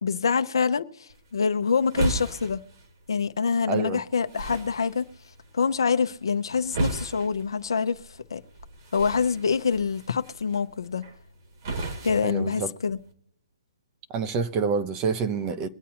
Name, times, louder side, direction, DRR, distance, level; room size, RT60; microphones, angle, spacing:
voice 1, 0.0-2.6 3.1-5.0 5.5-8.4 8.9-11.0 12.0-13.0, left 5 dB, 75° left, 0.8 m, -26 dB
sound 1, 1.1-13.1, right 2 dB, 45° right, 1.9 m, -36 dB
voice 2, 3.7-4.0 12.2-12.7 14.1-15.7, right 5 dB, 25° right, 0.7 m, -27 dB
23.5 x 8.3 x 2.9 m
hypercardioid pair, 150°, 2 cm